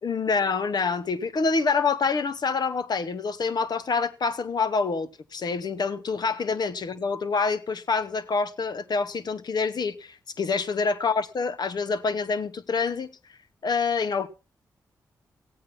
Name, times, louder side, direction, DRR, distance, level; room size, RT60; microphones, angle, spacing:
voice 1, 0.0-13.1 13.6-14.3, left 4 dB, 60° left, 1.3 m, -26 dB
16.0 x 8.7 x 5.5 m
supercardioid pair, 40°, 8 cm